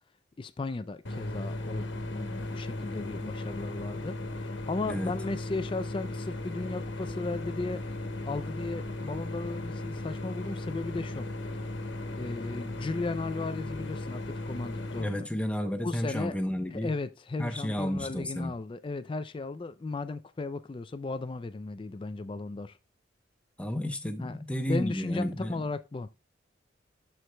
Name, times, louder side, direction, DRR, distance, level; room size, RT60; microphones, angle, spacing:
voice 1, 0.4-7.8 8.2-11.3 12.1-15.3 15.8-16.3 16.7-22.8 24.2-26.1, left 3 dB, 25° left, 0.3 m, -35 dB
sound 1, 1.1-15.0, left 1 dB, 80° left, 1.3 m, -36 dB
voice 2, 15.0-16.9 17.4-18.5 23.6-25.7, equal, 5° left, 0.7 m, -32 dB
13.0 x 4.6 x 2.2 m
head